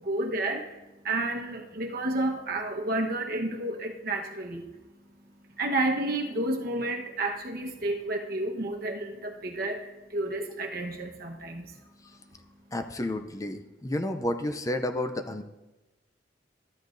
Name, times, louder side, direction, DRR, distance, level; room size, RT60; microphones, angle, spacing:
voice 1, 0.0-12.7, right 2 dB, 55° right, 2 dB, 1.1 m, -31 dB
voice 2, 12.7-15.4, left 1 dB, 20° left, 6 dB, 0.4 m, -31 dB
13.0 x 10.5 x 2.6 m, 1.0 s
head